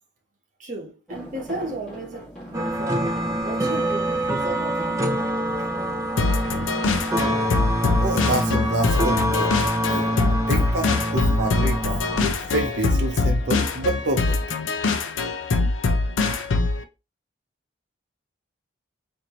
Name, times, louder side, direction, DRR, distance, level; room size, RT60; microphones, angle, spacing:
voice 1, 0.6-5.0, right 2 dB, 40° right, 1.1 m, -35 dB
sound 1, 1.1-14.6, right 1 dB, 5° left, 1.8 m, -43 dB
sound 2, 2.5-12.3, right 1 dB, 15° right, 0.4 m, -25 dB
sound 3, 6.2-16.8, left 3 dB, 85° left, 0.5 m, -23 dB
voice 2, 8.0-9.5 9.9-14.4, right 2 dB, 65° right, 0.6 m, -28 dB
4.3 x 2.7 x 2.9 m
head